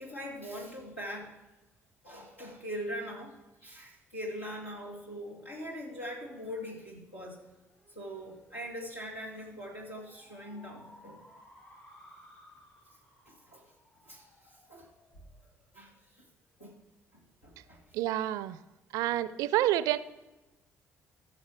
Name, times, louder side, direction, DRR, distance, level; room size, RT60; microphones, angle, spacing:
voice 1, 0.0-1.4 2.0-7.4 7.9-11.2 13.3-13.7 14.0-14.9 15.7-16.3 16.6-16.7 17.1-18.0 19.1-19.2, equal, 85° left, -4 dB, 2.1 m, -42 dB
sound 1, 7.4-16.2, left 1 dB, 40° left, 3.2 m, -59 dB
voice 2, 17.9-18.6 18.9-20.0, right 13 dB, 60° right, 16 dB, 0.4 m, -28 dB
15.0 x 6.5 x 4.6 m, 1.0 s
figure-of-eight pair, 45°, 7 cm